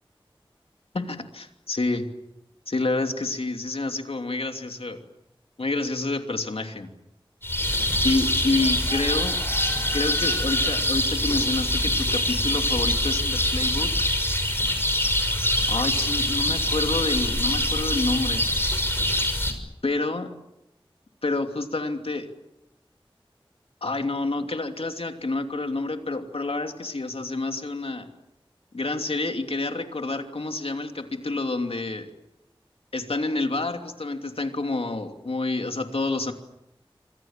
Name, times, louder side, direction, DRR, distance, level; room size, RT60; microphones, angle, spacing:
voice 1, 0.9-2.1 2.7-5.0 5.6-6.9 8.0-9.4 9.9-14.1 15.7-18.4 19.8-20.4 21.2-22.3 23.8-28.1 28.7-32.1 32.9-36.3, left 2 dB, 90° left, 5 dB, 2.8 m, -28 dB
sound 1, 7.4-19.5, left 1 dB, 25° left, 6.3 m, -24 dB
28.0 x 25.5 x 7.5 m, 0.89 s
wide cardioid pair, 45°, 10 cm